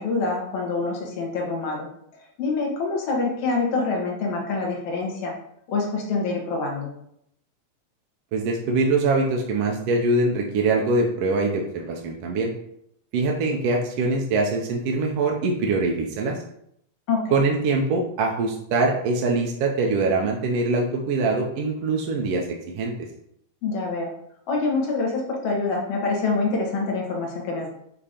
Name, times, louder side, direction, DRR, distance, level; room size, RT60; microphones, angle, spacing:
voice 1, 0.0-1.9 2.4-5.3 5.7-6.9 17.1-17.4 23.6-24.1 24.5-27.7, left 3 dB, 60° left, 0 dB, 2.1 m, -26 dB
voice 2, 8.3-12.5 13.1-16.4 17.3-22.5 22.7-22.9, right 3 dB, 70° right, 0 dB, 1.5 m, -23 dB
7.2 x 2.9 x 4.9 m, 0.73 s
omnidirectional pair, 3.5 m